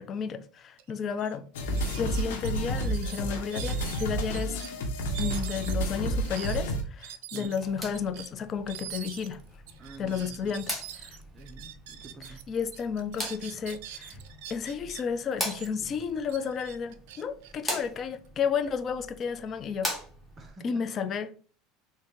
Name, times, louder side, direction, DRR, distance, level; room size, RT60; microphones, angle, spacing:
voice 1, 0.0-1.4 2.0-4.6 5.2-9.4 10.0-11.2 12.2-14.2 14.5-19.9 20.6-21.4, left 6 dB, 35° left, 0.4 m, -32 dB
sound 1, 0.8-0.9 1.2-1.4 1.7-4.7 5.1-12.4 12.7-15.0 15.4-18.3, right 11 dB, 75° right, 0.4 m, -44 dB
sound 2, 1.5-6.8, right 1 dB, 85° left, 0.9 m, -30 dB
sound 3, 7.4-20.5, equal, 5° left, 1.2 m, -41 dB
voice 2, 9.8-10.6 11.3-12.4 20.4-21.1, right 3 dB, 20° right, 0.6 m, -48 dB
3.7 x 2.6 x 3.6 m
supercardioid pair, 120°, 0 cm